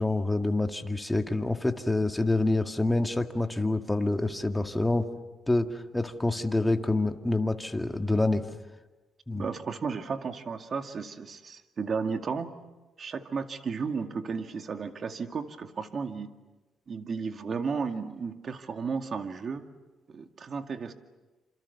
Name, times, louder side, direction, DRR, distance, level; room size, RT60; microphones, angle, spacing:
voice 1, 0.0-5.1 5.5-8.5 9.3-9.4, left 2 dB, 10° left, 5 dB, 2.0 m, -27 dB
voice 2, 9.3-12.5 13.0-16.3 16.9-19.7 20.1-20.9, right 5 dB, 45° right, 6 dB, 2.2 m, -34 dB
28.0 x 27.5 x 7.0 m, 1.2 s
cardioid pair, 90°, 0 cm